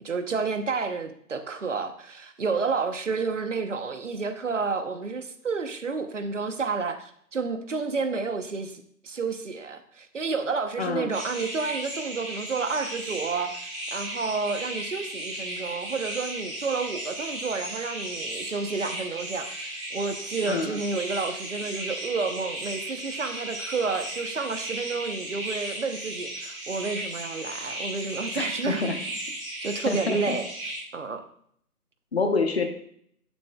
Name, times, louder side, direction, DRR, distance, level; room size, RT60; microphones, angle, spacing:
voice 1, 0.0-28.8 29.6-30.5 30.9-31.2, right 4 dB, 50° right, 9 dB, 1.0 m, -30 dB
voice 2, 10.8-11.1 20.5-20.8 28.3-29.0 29.9-30.4 32.1-32.7, left 3 dB, 40° left, 5 dB, 1.1 m, -27 dB
sound 1, 11.1-30.8, right 1 dB, 20° right, 1.7 m, -35 dB
11.5 x 7.1 x 2.3 m, 0.66 s
figure-of-eight pair, 155°, 46 cm